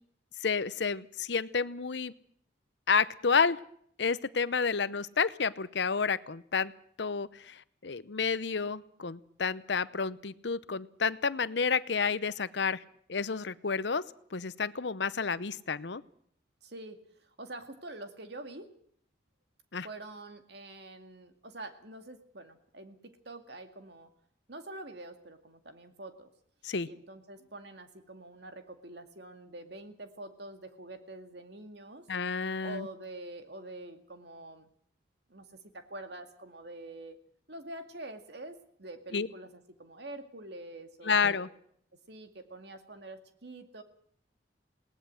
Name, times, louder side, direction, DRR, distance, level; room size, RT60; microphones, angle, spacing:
voice 1, 0.4-2.1 2.9-3.6 4.0-6.7 7.0-12.8 13.1-14.0 14.3-16.0 19.7-19.9 26.6-26.9 32.1-32.9 39.1-39.3 41.0-41.5, left 5 dB, 70° left, 16 dB, 0.8 m, -30 dB
voice 2, 16.6-18.7 19.8-24.1 24.5-26.3 26.8-32.1 32.6-34.7 35.3-35.5 35.7-37.2 37.5-41.5 42.1-43.8, right 2 dB, 60° right, 7 dB, 2.3 m, -46 dB
20.0 x 18.5 x 7.7 m, 0.65 s
head